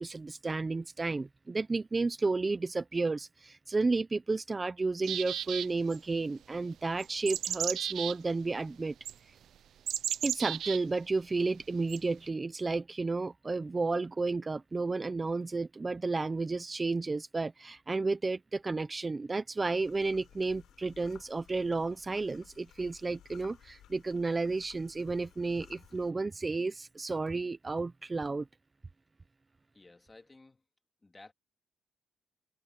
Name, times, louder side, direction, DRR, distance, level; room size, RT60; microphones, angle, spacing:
voice 1, 0.0-8.9 10.2-28.5, right 3 dB, 25° right, 0.9 m, -32 dB
sound 1, 5.0-6.0 7.0-8.2 9.1-9.2 9.9-10.8 11.9-12.0, right 10 dB, 70° right, 0.5 m, -34 dB
sound 2, 19.7-26.1, left 11 dB, 80° left, 4.3 m, -58 dB
voice 2, 29.7-30.6 31.0-31.3, left 3 dB, 20° left, 3.0 m, -55 dB
cardioid pair, 90°, 0 cm